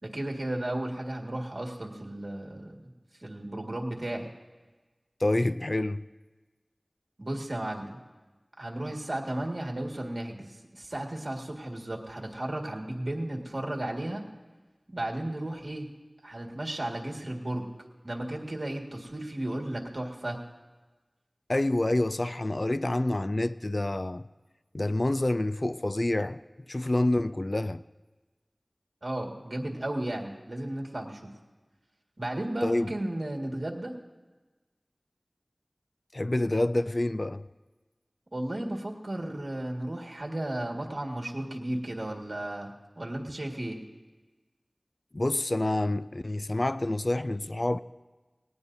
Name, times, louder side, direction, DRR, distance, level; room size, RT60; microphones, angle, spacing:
voice 1, 0.0-2.9 3.2-4.3 7.2-8.0 8.6-14.2 14.9-15.9 16.2-17.7 18.0-20.4 29.0-31.3 32.2-34.0 38.3-43.8, right 1 dB, 60° right, 1.9 m, -34 dB
voice 2, 5.2-6.0 21.5-24.3 24.7-26.4 26.7-27.8 32.6-32.9 36.1-37.4 45.1-47.8, left 1 dB, 50° left, 0.4 m, -27 dB
19.5 x 18.5 x 2.7 m
wide cardioid pair, 45°, 0 cm